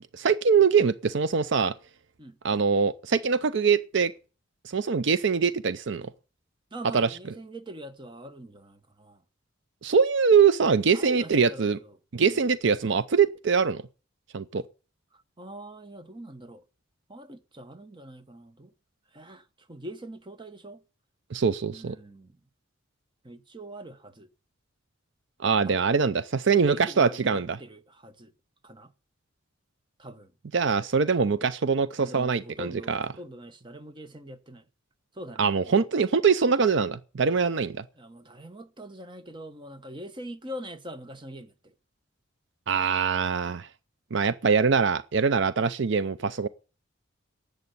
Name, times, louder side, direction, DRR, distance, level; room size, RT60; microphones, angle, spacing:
voice 1, 0.1-1.7 2.4-4.1 4.7-6.1 6.9-7.1 9.8-11.8 12.1-13.8 14.3-14.6 21.3-21.9 25.4-27.6 30.5-33.1 35.4-37.8 42.7-43.7 44.1-46.5, right 5 dB, 65° right, 0.6 m, -23 dB
voice 2, 6.7-9.2 10.9-12.0 12.3-12.4 15.4-16.6 17.1-18.7 19.1-20.8 21.7-22.4 23.2-24.3 25.7-25.9 26.5-28.3 28.6-28.9 30.0-30.3 32.0-34.6 35.1-35.7 38.0-41.7, right 1 dB, 25° right, 1.1 m, -43 dB
11.0 x 8.1 x 9.5 m
head